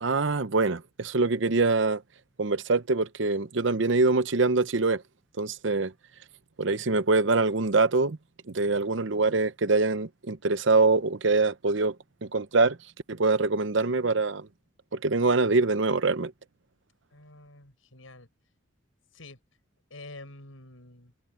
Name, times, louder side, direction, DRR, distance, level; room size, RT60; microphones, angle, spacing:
voice 1, 0.0-2.0 2.4-5.0 5.4-5.9 6.6-8.2 8.5-11.9 12.2-12.8 13.1-14.5 14.9-16.3, right 3 dB, 65° right, 0.8 m, -24 dB
voice 2, 17.1-18.3 19.1-19.4 19.9-21.1, left 2 dB, 85° left, 6.9 m, -47 dB
head